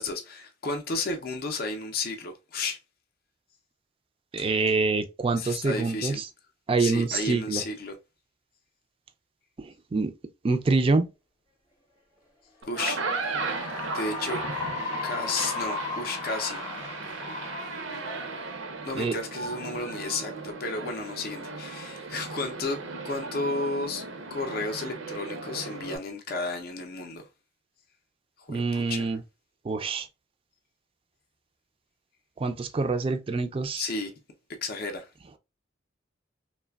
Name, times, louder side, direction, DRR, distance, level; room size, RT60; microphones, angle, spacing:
voice 1, 0.0-2.8 4.4-4.5 5.4-6.2 6.8-8.0 12.7-13.0 13.9-14.4 15.0-16.6 16.9-17.0 18.8-22.8 23.0-24.0 24.3-27.3 28.4-29.2 33.8-34.1 34.6-35.1, left 3 dB, 50° left, 0.4 m, -32 dB
voice 2, 4.3-6.3 6.7-7.6 9.6-10.1 10.4-11.1 18.9-19.1 28.5-29.2 29.6-30.1 32.4-33.9, right 3 dB, 30° right, 0.3 m, -26 dB
Cheering / Applause, 12.6-19.3, left 4 dB, 20° left, 0.7 m, -36 dB
sound 1, 12.6-26.0, right 4 dB, 90° right, 0.6 m, -36 dB
3.1 x 2.1 x 2.2 m
head